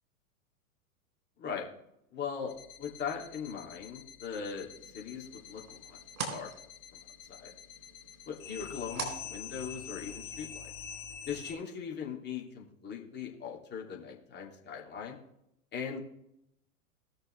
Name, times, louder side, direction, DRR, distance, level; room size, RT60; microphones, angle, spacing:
voice 1, 2.1-2.5 2.8-4.7 4.9-6.0 6.3-6.5 7.4-7.5 8.2-10.7 11.3-15.2 15.7-16.0, left 6 dB, 25° left, -2 dB, 2.8 m, -39 dB
sound 1, 2.5-11.5, left 8 dB, 40° left, 4.1 m, -46 dB
sound 2, 4.7-10.2, right 4 dB, 70° right, 4.0 m, -44 dB
18.5 x 6.6 x 3.4 m, 0.78 s
figure-of-eight pair, 100°, 43 cm